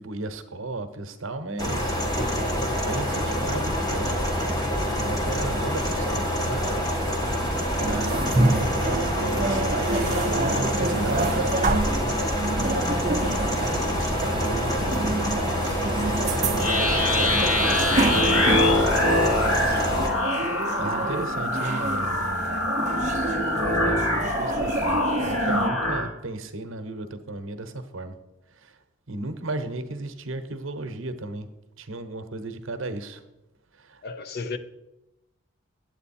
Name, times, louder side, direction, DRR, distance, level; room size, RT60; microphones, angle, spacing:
voice 1, 0.0-2.4 2.7-12.3 13.6-17.5 18.0-18.7 20.8-22.7 23.5-28.2 28.5-28.8 29.1-31.5 31.8-33.2 33.7-34.0, right 2 dB, 70° right, 0.9 m, -35 dB
sound 1, 1.6-20.1, equal, 20° left, 1.2 m, -26 dB
sound 2, 7.8-25.7, right 2 dB, 35° right, 0.7 m, -28 dB
sound 3, 16.6-26.1, left 1 dB, 85° left, 1.7 m, -24 dB
voice 2, 19.6-19.9 34.0-34.6, left 4 dB, 45° left, 0.6 m, -34 dB
8.9 x 8.1 x 4.2 m
head